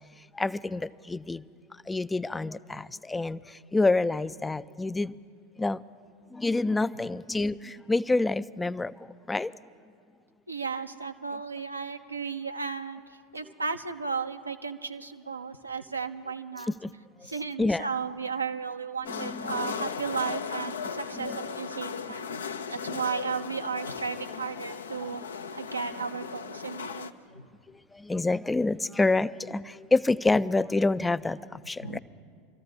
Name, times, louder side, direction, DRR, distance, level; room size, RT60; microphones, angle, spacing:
voice 1, 0.3-1.4 1.9-5.1 5.6-5.8 6.3-8.9 9.3-9.5 16.8-16.9 17.6-17.9 19.1-19.8 21.1-21.3 27.9-32.0, left 2 dB, 10° left, 16 dB, 0.3 m, -27 dB
voice 2, 10.5-13.0 13.3-16.7 17.2-27.5 31.8-32.0, right 5 dB, 90° right, 7 dB, 0.6 m, -34 dB
sound 1, 19.0-27.1, left 6 dB, 75° left, 0.5 m, -37 dB
26.5 x 14.0 x 2.8 m, 2.2 s
figure-of-eight pair, 80°, 0 cm